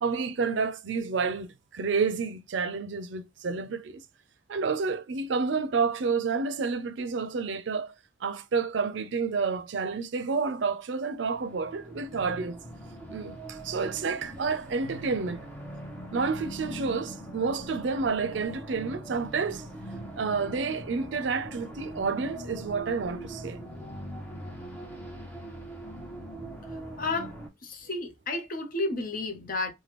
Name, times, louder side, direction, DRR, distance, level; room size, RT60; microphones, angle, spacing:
voice 1, 0.0-4.0 4.5-7.9 8.2-12.6 13.1-15.5 16.1-19.7 20.2-23.6, right 5 dB, 75° right, 0.5 m, -29 dB
sound 1, 11.3-27.5, right 1 dB, 10° left, 0.8 m, -41 dB
voice 2, 27.0-27.3 27.6-29.7, left 2 dB, 50° left, 0.7 m, -31 dB
3.3 x 2.2 x 2.9 m
head